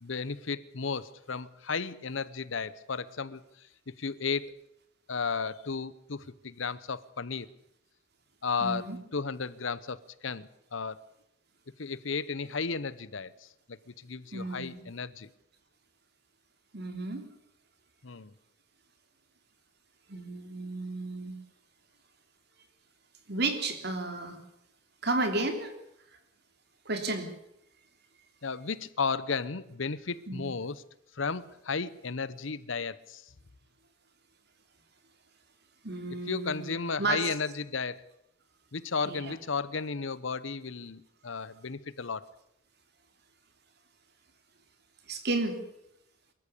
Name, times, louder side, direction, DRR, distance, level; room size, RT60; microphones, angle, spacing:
voice 1, 0.0-3.7 4.0-4.6 5.1-7.5 8.4-11.0 11.8-15.3 18.0-18.3 28.4-30.8 31.1-33.2 36.3-38.0 38.7-42.3, left 5 dB, 70° left, 18 dB, 0.9 m, -34 dB
voice 2, 8.6-9.0 14.3-14.8 16.7-17.2 20.1-21.3 23.3-24.4 25.0-25.7 26.8-27.3 30.3-30.5 35.8-37.2 39.0-39.4 45.1-45.6, right 2 dB, 50° right, 7 dB, 3.2 m, -32 dB
23.5 x 14.0 x 8.5 m, 0.81 s
head